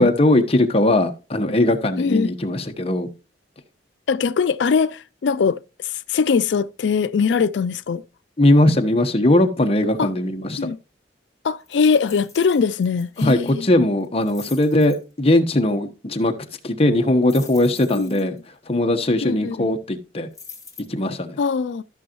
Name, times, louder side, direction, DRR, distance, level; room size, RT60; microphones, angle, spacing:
voice 1, 0.0-3.1 8.4-10.7 13.2-16.3 16.6-18.4 18.7-20.3 20.9-21.4, left 1 dB, 35° left, 1.1 m, -19 dB
voice 2, 2.0-2.3 4.1-8.0 10.0-10.1 10.6-10.8 11.4-13.7 17.9-18.3 19.2-19.7 21.4-21.8, left 5 dB, 80° left, 0.4 m, -21 dB
sound 1, 11.7-13.5 14.0-15.0 17.3-18.4 20.3-20.8, left 5 dB, 20° left, 2.7 m, -43 dB
14.0 x 6.2 x 3.0 m
head